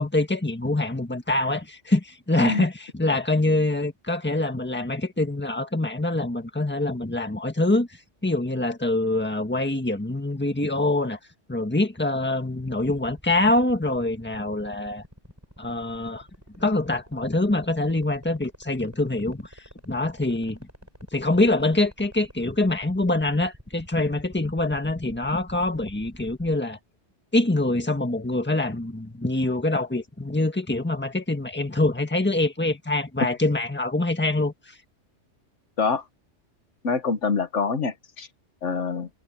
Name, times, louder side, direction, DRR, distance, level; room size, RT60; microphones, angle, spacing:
voice 1, 0.0-7.9 8.2-11.2 11.5-15.0 15.6-16.3 16.6-20.6 21.1-26.8 27.3-34.8, left 2 dB, 10° left, 1.6 m, -25 dB
sound 1, 12.8-26.6, equal, 15° right, 4.5 m, -47 dB
voice 2, 36.8-38.3 38.6-39.1, left 5 dB, 75° left, 1.6 m, -25 dB
omnidirectional pair, 1.3 m